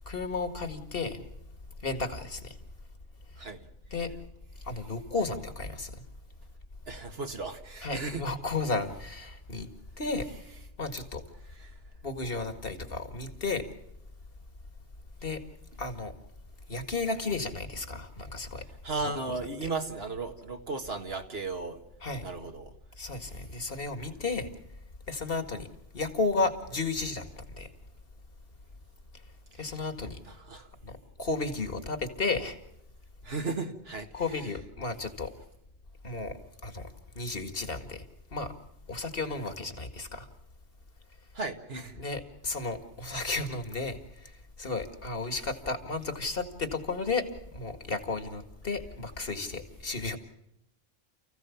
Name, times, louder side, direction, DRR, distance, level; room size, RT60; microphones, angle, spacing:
voice 1, 0.1-1.2 1.8-2.6 3.9-4.1 4.7-6.0 7.8-9.7 10.0-10.3 10.8-11.2 12.0-13.6 15.2-15.4 15.8-16.1 16.7-18.6 19.3-19.7 22.0-22.3 23.0-24.5 25.1-25.7 25.9-27.7 29.6-30.2 30.8-32.6 34.1-35.3 36.0-36.4 36.6-36.9 37.2-38.0 38.3-38.5 38.9-40.3 42.0-44.3 44.6-47.3 47.5-50.2, left 3 dB, 60° left, 8 dB, 2.2 m, -33 dB
voice 2, 6.9-8.3 11.6-11.7 18.8-21.8 22.2-22.7 30.5-30.7 33.2-34.1 41.3-42.0, right 3 dB, 70° right, 4 dB, 2.1 m, -35 dB
29.5 x 15.5 x 7.2 m, 0.81 s
omnidirectional pair, 1.1 m